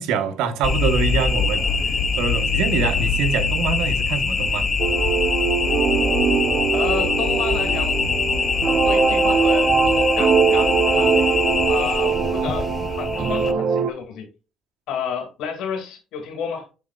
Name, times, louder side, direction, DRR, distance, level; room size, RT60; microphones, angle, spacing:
voice 1, 0.0-4.7, right 6 dB, 80° right, 1.3 m, -25 dB
sound 1, 0.6-13.5, left 4 dB, 40° left, 0.7 m, -23 dB
sound 2, 4.8-13.9, right 5 dB, 55° right, 0.7 m, -21 dB
voice 2, 6.7-8.0 8.8-14.3 14.9-16.7, left 7 dB, 80° left, 2.6 m, -31 dB
8.6 x 4.5 x 2.4 m
supercardioid pair, 75°, 0 cm